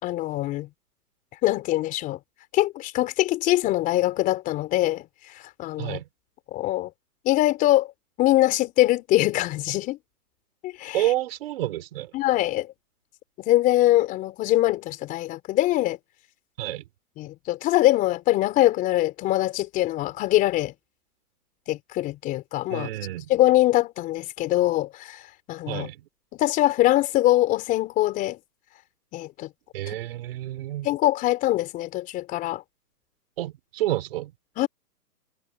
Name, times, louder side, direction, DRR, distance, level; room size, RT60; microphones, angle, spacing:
voice 1, 0.0-0.7 1.4-2.2 2.5-5.0 5.6-6.0 6.5-6.9 7.2-7.9 8.2-10.0 10.6-11.0 12.1-12.7 13.4-16.0 17.2-20.7 21.7-22.9 23.3-25.2 25.5-25.9 26.3-28.4 29.1-29.5 29.9-30.0 30.8-32.6 34.6-34.7, left 15 dB, 15° left, 4.1 m, -23 dB
voice 2, 10.9-12.1 16.6-16.8 22.7-23.3 25.7-26.0 29.7-30.9 33.4-34.3, right 14 dB, 35° right, 4.8 m, -29 dB
hypercardioid pair, 160°, 48 cm